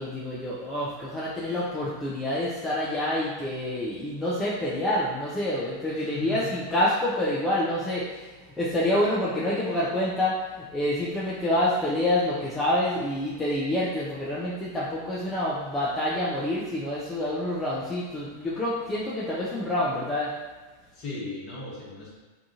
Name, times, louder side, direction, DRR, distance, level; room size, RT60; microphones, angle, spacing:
voice 1, 0.0-20.3, left 1 dB, 10° left, -8 dB, 0.4 m, -27 dB
voice 2, 5.9-6.5 20.9-22.1, left 2 dB, 40° left, -6 dB, 0.9 m, -37 dB
2.7 x 2.3 x 2.5 m, 1.3 s
figure-of-eight pair, 90°, 0 cm